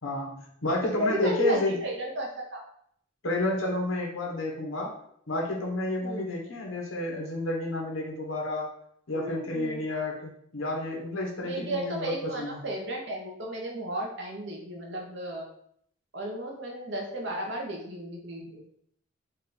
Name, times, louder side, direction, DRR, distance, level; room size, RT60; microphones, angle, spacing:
voice 1, 0.0-1.8 3.2-4.9 5.3-8.7 9.1-12.6, left 2 dB, 80° left, 0 dB, 1.1 m, -30 dB
voice 2, 1.0-2.6 6.0-6.3 9.1-9.8 11.4-15.5 16.1-18.6, right 1 dB, 60° right, -1 dB, 1.0 m, -33 dB
4.2 x 2.5 x 3.9 m, 0.68 s
head